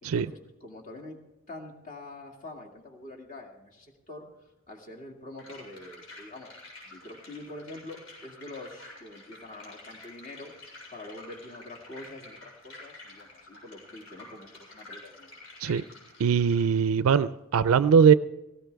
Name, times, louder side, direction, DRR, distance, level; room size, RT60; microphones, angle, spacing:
voice 1, 0.0-1.2 1.5-4.3 4.7-6.5 6.8-10.5 10.9-15.3, left 2 dB, 35° left, 0 dB, 2.3 m, -45 dB
sound 1, 5.4-16.6, left 2 dB, 80° left, 6.9 m, -49 dB
voice 2, 16.2-18.1, right 7 dB, 85° right, 15 dB, 0.4 m, -21 dB
18.0 x 16.0 x 3.5 m, 0.98 s
head